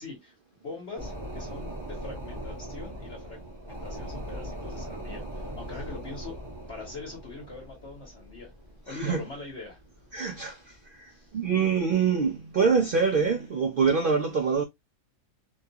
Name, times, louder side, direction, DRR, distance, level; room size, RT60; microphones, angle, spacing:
voice 1, 0.0-6.4 6.7-8.5 8.9-10.1 11.1-11.3, left 3 dB, 50° left, 1.2 m, -42 dB
sound 1, 1.0-11.0 11.3-11.4, equal, 25° right, 1.0 m, -40 dB
voice 2, 8.9-9.2 10.1-14.6, right 5 dB, 80° right, 0.4 m, -25 dB
2.9 x 2.3 x 2.7 m
omnidirectional pair, 1.5 m